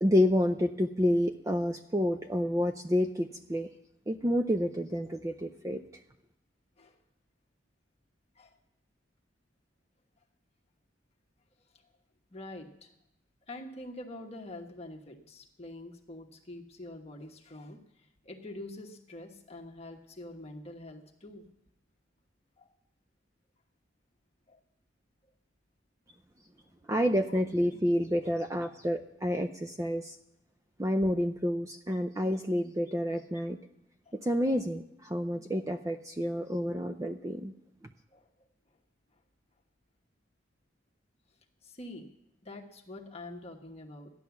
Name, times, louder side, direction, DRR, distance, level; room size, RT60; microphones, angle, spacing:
voice 1, 0.0-3.7 4.1-5.8 26.9-30.2 30.8-33.6 34.2-37.5, equal, 15° right, 7 dB, 0.5 m, -29 dB
voice 2, 12.3-12.9 13.5-17.8 18.2-21.5 22.6-22.7 24.5-24.6 27.3-27.4 34.1-34.2 38.1-38.3 41.6-42.1 42.4-44.1, left 1 dB, 35° left, 2 dB, 1.2 m, -45 dB
13.5 x 10.5 x 7.1 m, 0.84 s
head